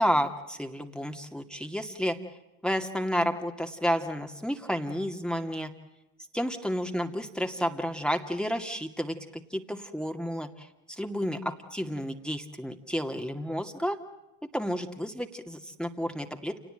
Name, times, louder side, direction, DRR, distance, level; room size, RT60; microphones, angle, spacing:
voice 1, 0.0-2.2 2.6-5.7 6.3-14.0 14.5-16.6, equal, ahead, 5 dB, 2.2 m, -31 dB
28.5 x 19.5 x 9.0 m, 0.97 s
hypercardioid pair, 60°, 41 cm